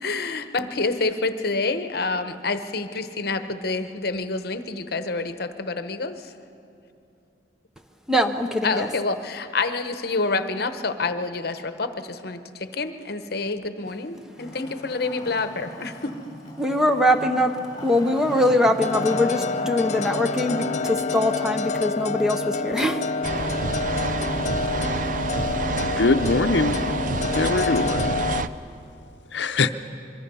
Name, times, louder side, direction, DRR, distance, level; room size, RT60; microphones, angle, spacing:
voice 1, 0.0-6.3 8.6-16.2, left 3 dB, 60° left, 9 dB, 1.0 m, -28 dB
voice 2, 8.1-8.9 16.6-23.1, left 1 dB, 5° right, 6 dB, 0.8 m, -22 dB
Wood, 14.4-20.8, equal, 25° left, 4.3 m, -39 dB
sound 1, 18.8-28.4, left 4 dB, 40° left, 0.4 m, -28 dB
sound 2, 23.2-28.5, right 3 dB, 50° right, 0.6 m, -28 dB
voice 3, 25.8-26.8 27.3-28.2 29.3-29.7, left 3 dB, 80° left, 10 dB, 0.6 m, -22 dB
25.0 x 23.0 x 5.5 m, 2.6 s
head